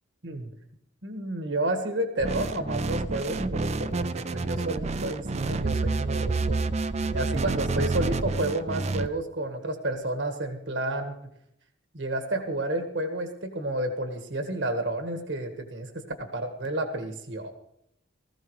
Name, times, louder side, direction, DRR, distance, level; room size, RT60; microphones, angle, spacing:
voice 1, 1.0-6.6 7.1-11.2 11.9-17.5, right 1 dB, 65° right, 6 dB, 1.6 m, -31 dB
sound 1, 2.2-9.1, right 3 dB, 35° right, 0.5 m, -28 dB
19.5 x 14.5 x 3.2 m, 0.75 s
head